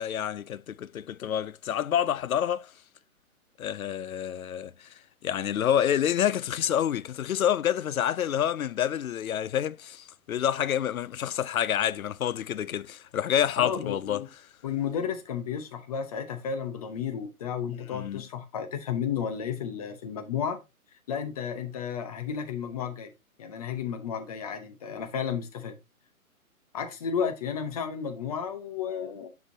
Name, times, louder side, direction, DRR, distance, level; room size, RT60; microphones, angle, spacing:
voice 1, 0.0-2.7 3.6-4.9 5.2-14.2 17.9-18.2, left 10 dB, 70° left, 0.6 m, -28 dB
voice 2, 13.6-14.3 14.6-20.6 21.1-23.1 23.4-25.8 26.7-29.3, left 7 dB, 25° left, 0.8 m, -32 dB
9.1 x 5.1 x 2.7 m
figure-of-eight pair, 145°, 44 cm